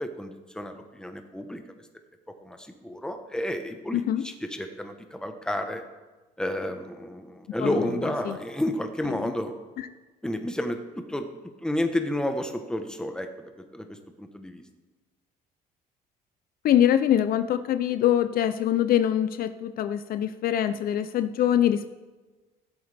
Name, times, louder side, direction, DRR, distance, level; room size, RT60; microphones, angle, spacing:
voice 1, 0.0-1.6 2.4-5.8 6.4-9.5 10.2-11.3 11.6-14.6, left 1 dB, 5° left, 6 dB, 1.1 m, -31 dB
voice 2, 3.9-4.2 7.6-7.9 8.2-8.4 9.2-9.3 16.6-21.9, left 10 dB, 60° left, 11 dB, 0.5 m, -24 dB
15.0 x 7.9 x 3.5 m, 1.2 s
cardioid pair, 110°, 17 cm